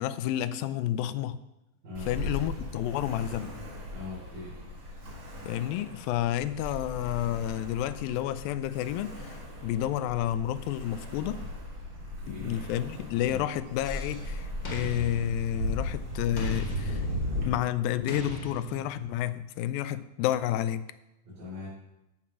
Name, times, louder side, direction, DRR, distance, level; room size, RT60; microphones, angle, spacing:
voice 1, 0.0-1.4 2.1-3.6 5.4-11.4 12.3-17.0 17.5-20.8, left 12 dB, 85° left, 2.3 m, -30 dB
Ocean, 1.9-17.4, left 1 dB, 40° right, 4.0 m, -37 dB
voice 2, 3.9-4.6 12.2-12.6 13.2-13.4 21.2-21.7, left 3 dB, 80° right, 5.9 m, -41 dB
sound 1, 13.8-14.2 14.6-15.9 16.4-17.5 18.1-19.1, left 1 dB, 40° left, 1.5 m, -38 dB
13.5 x 5.9 x 6.2 m
omnidirectional pair, 4.1 m